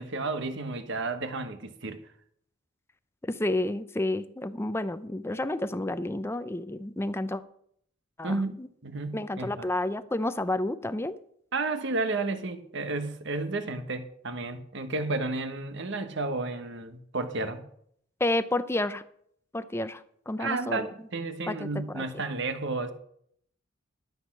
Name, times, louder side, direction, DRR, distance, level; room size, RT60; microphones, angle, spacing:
voice 1, 0.0-2.0 8.2-8.6 8.8-9.7 11.5-17.6 20.4-22.9, right 3 dB, 60° right, 1.2 m, -32 dB
voice 2, 3.2-7.4 8.2-8.7 9.1-11.2 18.2-19.0 19.5-20.9 21.5-22.0, left 1 dB, 10° left, 0.5 m, -30 dB
12.5 x 8.1 x 6.0 m
head